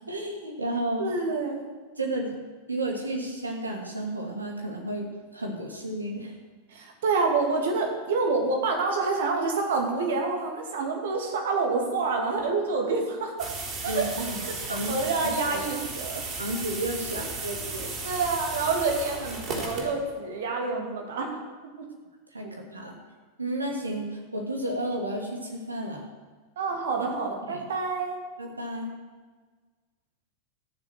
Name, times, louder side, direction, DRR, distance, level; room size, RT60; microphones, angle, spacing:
voice 1, 0.1-1.1 2.0-2.3 2.7-5.1 5.3-6.3 13.9-14.4 14.7-15.0 15.5-15.6 16.4-17.9 22.3-22.9 23.4-26.1 27.0-27.1 27.4-27.7 28.4-28.9, right 1 dB, 80° right, 1 dB, 2.6 m, -32 dB
voice 2, 1.0-1.6 6.7-13.5 13.8-14.0 14.4-16.2 18.0-21.4 21.8-21.9 26.6-28.2, right 4 dB, 60° right, 2 dB, 2.7 m, -27 dB
sound 1, 13.4-19.8, right 3 dB, 35° right, 4.2 m, -35 dB
14.5 x 7.2 x 7.8 m, 1.4 s
figure-of-eight pair, 90°, 0 cm